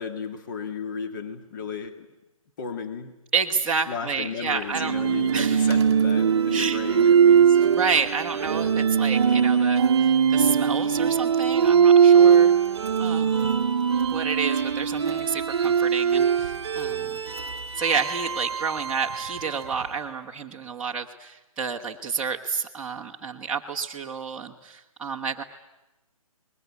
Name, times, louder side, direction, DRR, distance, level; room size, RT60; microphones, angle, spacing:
voice 1, 0.0-2.1 2.6-3.1 3.9-7.7, left 5 dB, 35° left, 7 dB, 1.9 m, -34 dB
voice 2, 3.3-4.9 5.3-5.7 6.5-6.8 7.7-12.5 13.0-13.6 14.1-17.2 17.7-25.4, right 5 dB, 5° right, -5 dB, 1.1 m, -30 dB
sound 1, 4.7-19.8, right 7 dB, 50° right, 0.9 m, -21 dB
29.5 x 20.5 x 8.4 m, 0.96 s
hypercardioid pair, 160°, 18 cm